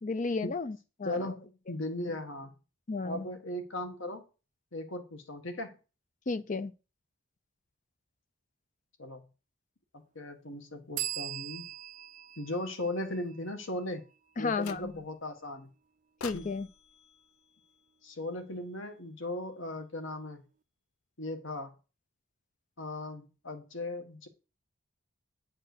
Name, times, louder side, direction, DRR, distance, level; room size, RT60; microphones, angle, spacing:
voice 1, 0.0-1.2 2.9-3.3 6.3-6.7 14.4-14.9 16.2-16.7, left 4 dB, 35° left, 0.5 m, -33 dB
voice 2, 1.0-2.5 3.0-4.2 4.7-5.8 9.0-9.2 10.1-11.7 12.4-14.0 14.4-15.7 16.3-16.5 18.0-20.4 21.2-21.7 22.8-24.3, left 1 dB, 60° left, 1.5 m, -37 dB
sound 1, 11.0-14.5, right 12 dB, 35° right, 0.4 m, -41 dB
sound 2, 14.6-15.2 16.2-18.4, left 6 dB, 85° left, 0.6 m, -49 dB
9.4 x 4.4 x 6.6 m
head